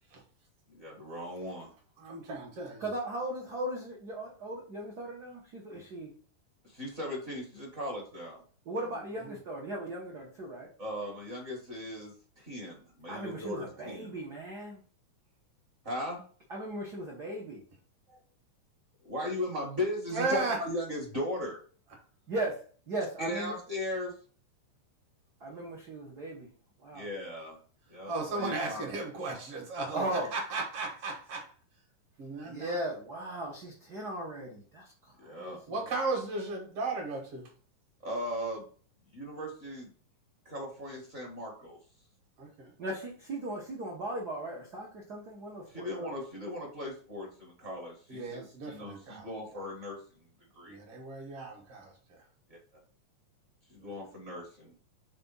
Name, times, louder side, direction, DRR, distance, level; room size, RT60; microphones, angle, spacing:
voice 1, 0.7-1.7 6.6-8.4 10.8-14.1 15.8-16.2 18.1-18.2 19.0-21.6 23.2-24.1 26.9-27.6 27.9-28.9 35.2-35.6 38.0-38.7 39.1-39.9 40.4-41.8 45.7-50.0 50.5-50.8 53.7-54.7, left 1 dB, 40° right, -2 dB, 1.1 m, -37 dB
voice 2, 2.0-2.8 20.1-20.6 28.1-31.5 32.2-32.7 35.7-37.5 42.4-42.7 48.1-49.3 50.7-51.9 53.8-53.9, right 3 dB, 60° right, 1 dB, 1.8 m, -35 dB
voice 3, 2.8-6.1 8.7-10.7 13.1-14.8 16.5-17.6 22.3-22.6 22.9-23.6 25.4-26.5 26.8-27.1 29.9-30.3 32.5-35.8 42.8-46.1, right 1 dB, 75° right, -3 dB, 0.9 m, -37 dB
5.0 x 3.5 x 5.3 m, 0.43 s
omnidirectional pair, 3.5 m